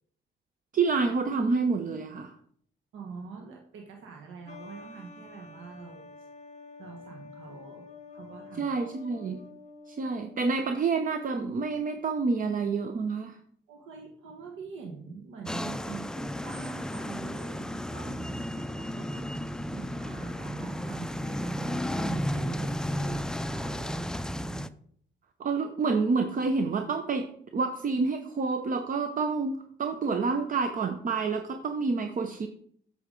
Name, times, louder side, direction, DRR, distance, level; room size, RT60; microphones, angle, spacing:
voice 1, 0.7-2.3 8.6-9.4 9.9-13.4 25.4-27.3 27.5-32.5, right 4 dB, 45° right, 6 dB, 0.7 m, -28 dB
voice 2, 2.9-6.1 6.8-8.7 13.7-19.3 19.7-24.1, right 5 dB, 85° right, 1 dB, 1.2 m, -44 dB
sound 1, 4.5-10.8, left 3 dB, 35° left, 1.0 m, -48 dB
sound 2, 15.5-24.7, equal, 5° left, 0.4 m, -33 dB
8.3 x 6.9 x 3.8 m, 0.62 s
cardioid pair, 90°, 20 cm